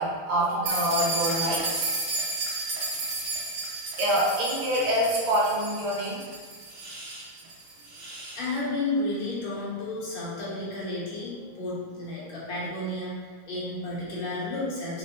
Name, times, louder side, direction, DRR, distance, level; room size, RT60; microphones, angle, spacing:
voice 1, 0.0-1.9 3.2-3.3 4.0-6.2, equal, 90° right, -5 dB, 1.9 m, -26 dB
sound 1, 0.7-8.4, right 3 dB, 50° right, 0.7 m, -33 dB
voice 2, 8.3-15.0, left 2 dB, 70° left, -6 dB, 1.9 m, -32 dB
5.4 x 3.2 x 2.7 m, 1.5 s
omnidirectional pair, 2.2 m